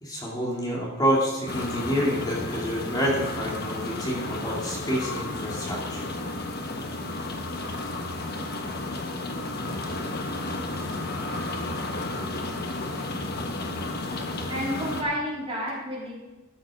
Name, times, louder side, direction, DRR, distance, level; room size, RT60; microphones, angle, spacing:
voice 1, 0.0-6.1, equal, 20° left, -5 dB, 2.6 m, -28 dB
sound 1, 1.5-15.0, left 2 dB, 45° left, 1.2 m, -32 dB
voice 2, 14.5-16.1, equal, 25° right, -5 dB, 3.3 m, -30 dB
13.5 x 7.1 x 5.0 m, 1.1 s
head